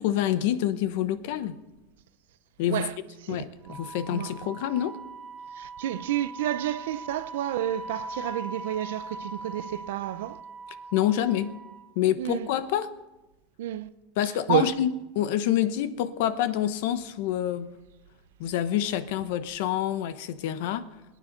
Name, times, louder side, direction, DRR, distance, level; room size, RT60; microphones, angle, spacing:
voice 1, 0.0-1.6 2.6-2.9 3.3-5.0 10.9-11.5 12.0-12.9 14.2-17.7 18.4-20.9, left 11 dB, 60° left, 0.9 m, -27 dB
voice 2, 3.2-3.7 4.1-4.3 5.6-10.4 12.2-12.5 13.6-13.9 14.5-14.7, right 12 dB, 80° right, 0.7 m, -30 dB
Wind instrument woodwind instrument, 3.6-11.9, right 2 dB, 5° right, 3.4 m, -41 dB
22.0 x 9.5 x 5.3 m
supercardioid pair, 165°, 0 cm